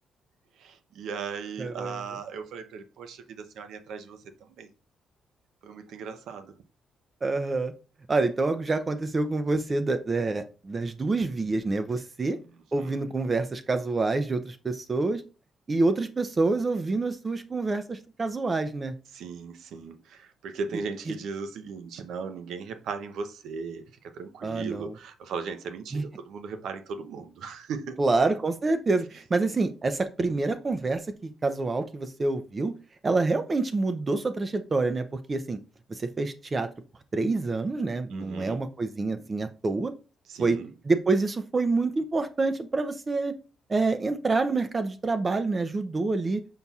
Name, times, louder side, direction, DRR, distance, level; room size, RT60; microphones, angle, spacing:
voice 1, 0.6-4.7 5.6-6.5 12.3-13.0 19.1-28.0 38.1-38.6 40.3-40.7, right 5 dB, 75° right, 0.6 m, -38 dB
voice 2, 1.6-2.0 7.2-7.7 8.1-12.4 12.7-15.2 15.7-18.9 24.4-24.9 25.9-26.0 28.0-32.7 33.0-35.6 35.9-36.7 37.1-39.9 40.4-40.6 40.9-43.3 43.7-46.4, right 3 dB, 30° right, 0.4 m, -27 dB
5.4 x 4.1 x 2.3 m
cardioid pair, 90°, 0 cm